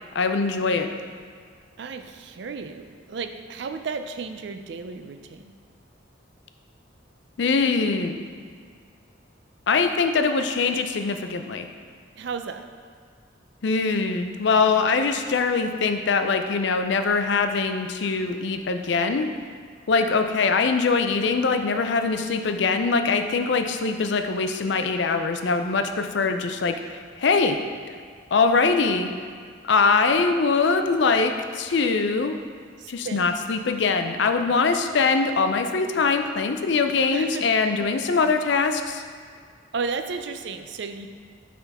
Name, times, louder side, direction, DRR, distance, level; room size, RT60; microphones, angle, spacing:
voice 1, 0.1-0.9 7.4-8.2 9.7-11.7 13.6-19.3 19.9-27.6 28.3-29.1 29.6-32.4 32.9-39.0, left 4 dB, 65° left, 7 dB, 0.4 m, -22 dB
voice 2, 1.8-5.5 12.2-12.7 32.8-33.3 37.1-37.5 37.8-37.9 39.7-41.1, right 5 dB, 60° right, 7 dB, 0.4 m, -33 dB
9.6 x 3.7 x 3.5 m, 2.1 s
head